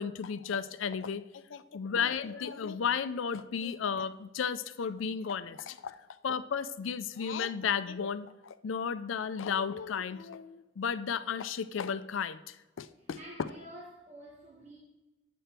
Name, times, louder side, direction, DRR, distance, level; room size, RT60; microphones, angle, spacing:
voice 1, 0.0-6.0 6.2-13.5, left 6 dB, 85° left, 0.4 m, -34 dB
voice 2, 12.9-14.8, right 1 dB, 35° right, 1.2 m, -50 dB
9.1 x 5.1 x 4.3 m
head